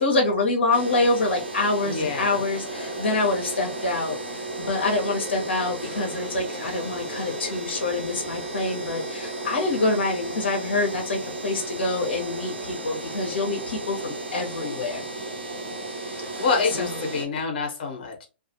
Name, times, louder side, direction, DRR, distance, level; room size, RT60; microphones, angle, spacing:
voice 1, 0.0-15.0 16.8-17.0, left 2 dB, 75° left, 0.9 m, -26 dB
sound 1, 0.7-17.3, right 2 dB, 85° right, 1.0 m, -34 dB
voice 2, 1.8-2.4 16.1-18.3, left 4 dB, 50° left, 1.0 m, -27 dB
2.5 x 2.4 x 2.7 m
hypercardioid pair, 125°, 6 cm